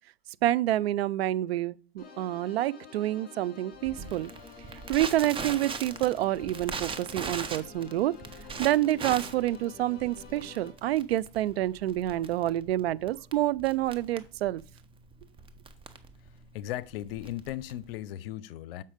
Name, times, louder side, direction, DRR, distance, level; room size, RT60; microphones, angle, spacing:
voice 1, 0.4-4.3 4.9-8.1 8.6-14.6, right 14 dB, 80° right, 0.5 m, -28 dB
sound 1, 2.0-10.7, left 6 dB, 30° left, 2.9 m, -49 dB
Crackle, 3.8-18.0, right 5 dB, 15° right, 0.8 m, -40 dB
voice 2, 16.5-18.8, left 14 dB, 65° left, 0.6 m, -37 dB
7.3 x 5.5 x 5.0 m
hypercardioid pair, 120°, 30 cm